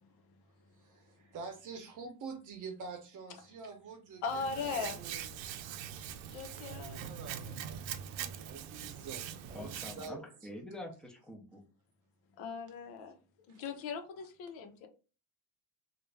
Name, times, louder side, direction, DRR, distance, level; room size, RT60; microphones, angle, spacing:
voice 1, 0.8-5.3 6.5-10.5 13.5-13.6, right 4 dB, 45° right, 0.8 m, -47 dB
voice 2, 4.2-5.0 6.3-7.0 7.3-7.6 12.4-13.2 13.5-14.9, left 5 dB, 90° left, 1.0 m, -39 dB
Hands, 4.3-10.1, right 9 dB, 85° right, 0.6 m, -42 dB
voice 3, 9.5-11.6, left 1 dB, ahead, 0.5 m, -46 dB
3.3 x 2.5 x 3.3 m
cardioid pair, 155°, 45 cm